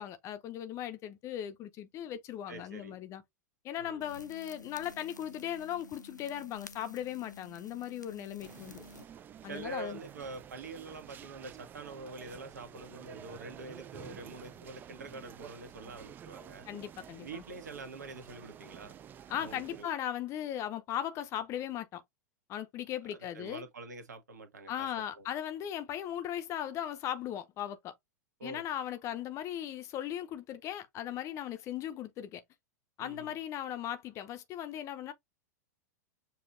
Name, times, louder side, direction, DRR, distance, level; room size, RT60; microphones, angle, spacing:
voice 1, 0.0-3.2 3.6-8.8 9.4-10.0 16.7-17.4 19.3-22.0 22.5-23.6 24.7-27.9 28.4-32.4 33.0-35.1, left 10 dB, 30° left, 0.6 m, -38 dB
voice 2, 2.5-2.9 3.8-4.1 9.5-16.7 17.2-18.9 19.4-19.9 23.3-24.9 25.2-25.3 28.4-28.6 33.0-33.3, right 3 dB, 70° right, 1.5 m, -45 dB
sound 1, 4.0-9.0, left 3 dB, 90° left, 0.5 m, -52 dB
sound 2, 8.4-19.8, right 9 dB, 20° right, 0.3 m, -50 dB
6.9 x 2.9 x 2.5 m
figure-of-eight pair, 95°, 10 cm